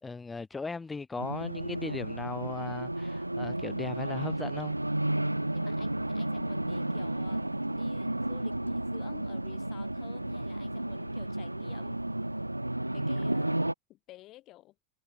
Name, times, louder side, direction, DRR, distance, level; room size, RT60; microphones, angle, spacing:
voice 1, 0.0-4.7, left 4 dB, 10° left, 3.1 m, -38 dB
Race car auto racing, 1.2-13.7, right 1 dB, 85° right, 0.8 m, -32 dB
Bowed string instrument, 4.6-9.2, right 40 dB or more, 45° right, 8.0 m, -56 dB
voice 2, 5.5-7.4 7.7-12.1 12.9-13.6 13.9-14.7, left 16 dB, 35° left, 5.7 m, -52 dB
figure-of-eight pair, 90°, 0 cm